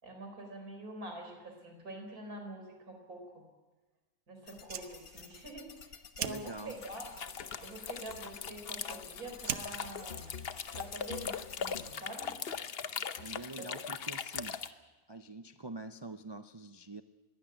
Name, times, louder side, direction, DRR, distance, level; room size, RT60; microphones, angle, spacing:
voice 1, 0.0-3.4 4.3-7.1 7.6-10.3 10.7-12.4 13.6-14.0, right 1 dB, 85° right, 4 dB, 4.8 m, -46 dB
sound 1, 4.5-12.0, left 6 dB, 80° left, 1.7 m, -53 dB
Fire, 4.5-11.4, right 8 dB, 65° right, 1.2 m, -45 dB
voice 2, 6.2-6.8 13.2-14.6 15.1-17.0, right 2 dB, 40° right, 8 dB, 0.3 m, -45 dB
sound 2, 6.8-14.7, left 7 dB, 50° left, 1.0 m, -40 dB
21.0 x 16.5 x 9.1 m, 1.2 s
omnidirectional pair, 1.5 m